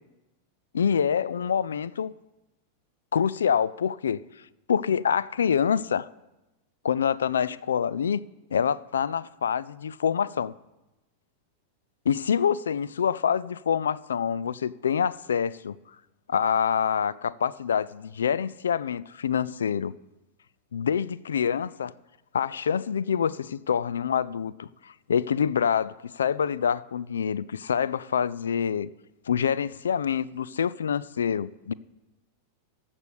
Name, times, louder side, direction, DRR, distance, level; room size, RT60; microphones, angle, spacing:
voice 1, 0.7-2.1 3.1-4.2 4.7-6.1 6.8-8.2 8.5-10.5 12.1-15.8 16.3-19.9 20.7-21.9 22.3-28.9 29.3-31.7, left 7 dB, 65° left, 0.3 m, -26 dB
15.0 x 5.5 x 6.5 m
figure-of-eight pair, 90°, 0 cm